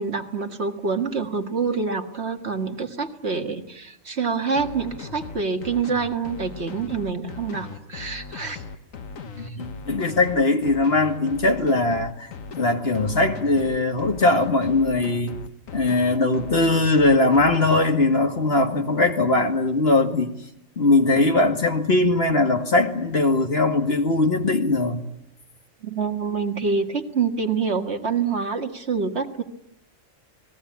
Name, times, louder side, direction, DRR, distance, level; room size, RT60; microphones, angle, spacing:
voice 1, 0.0-8.6 9.4-9.6 25.8-29.4, right 5 dB, 55° right, 5 dB, 2.1 m, -26 dB
sound 1, 4.6-17.8, left 5 dB, 80° left, 1.8 m, -38 dB
voice 2, 9.4-12.3 12.6-15.4 15.7-20.3 20.8-25.0, left 2 dB, 50° left, 5 dB, 2.3 m, -20 dB
29.5 x 20.0 x 9.6 m, 0.77 s
omnidirectional pair, 1.4 m